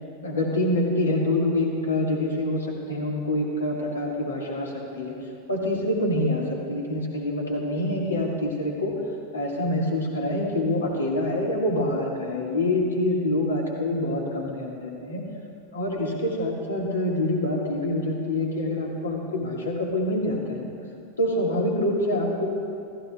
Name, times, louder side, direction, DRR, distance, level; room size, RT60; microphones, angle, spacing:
voice 1, 0.2-5.1 5.5-9.0 9.3-15.2 15.7-20.7 21.2-22.5, left 1 dB, 70° left, -1 dB, 1.9 m, -26 dB
15.0 x 14.5 x 2.4 m, 2.4 s
figure-of-eight pair, 90°, 0 cm